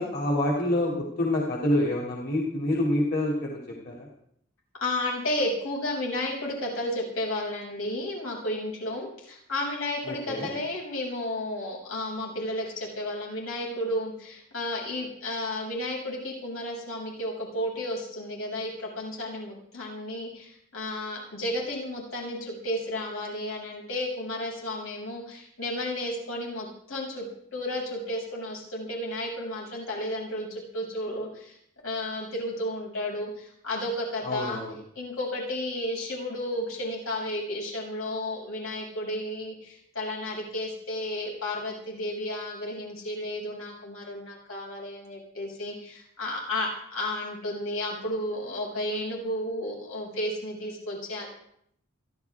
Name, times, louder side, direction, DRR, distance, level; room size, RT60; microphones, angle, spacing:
voice 1, 0.0-4.1 10.0-10.5 34.2-34.8, left 1 dB, 50° left, -3 dB, 2.8 m, -27 dB
voice 2, 4.8-27.3 27.5-31.6 31.8-34.6 34.9-51.3, left 1 dB, 80° left, -3 dB, 6.7 m, -32 dB
29.5 x 11.5 x 3.6 m, 0.71 s
head